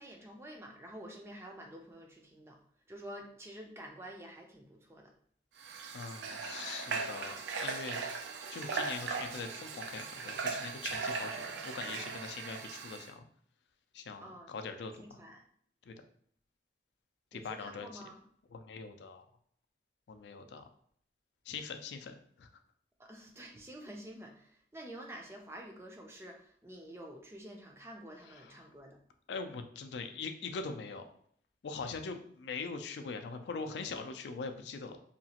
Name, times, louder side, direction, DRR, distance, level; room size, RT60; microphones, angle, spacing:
voice 1, 0.0-2.6 2.9-5.1 14.2-14.5 15.0-15.4 17.3-18.2 23.0-29.0, right 1 dB, 15° right, 1 dB, 0.4 m, -49 dB
Water / Water tap faucet, 5.6-13.1, right 4 dB, 85° right, 0.3 m, -38 dB
voice 2, 5.9-8.0 8.5-13.2 13.9-15.2 15.9-16.0 17.3-18.0 18.5-19.2 20.1-20.6 21.5-22.5 29.3-31.1 31.6-35.0, left 4 dB, 80° left, 7 dB, 0.3 m, -42 dB
2.8 x 2.4 x 2.8 m, 0.62 s
head